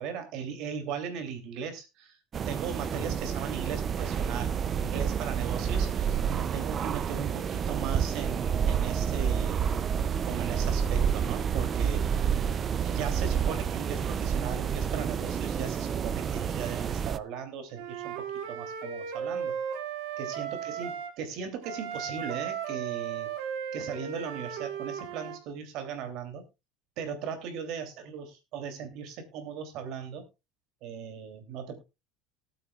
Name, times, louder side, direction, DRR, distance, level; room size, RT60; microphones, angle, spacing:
voice 1, 0.0-2.2 2.4-9.7 10.2-12.4 12.8-19.6 20.2-23.3 23.7-26.5 27.0-30.3 30.8-31.8, right 7 dB, 60° right, 7 dB, 2.9 m, -38 dB
sound 1, 2.3-17.2, right 7 dB, 30° right, 0.5 m, -29 dB
Wind instrument woodwind instrument, 17.7-21.1 21.6-25.4, right 8 dB, 80° right, 2.1 m, -36 dB
18.5 x 8.9 x 2.3 m, 0.25 s
cardioid pair, 135°, 0 cm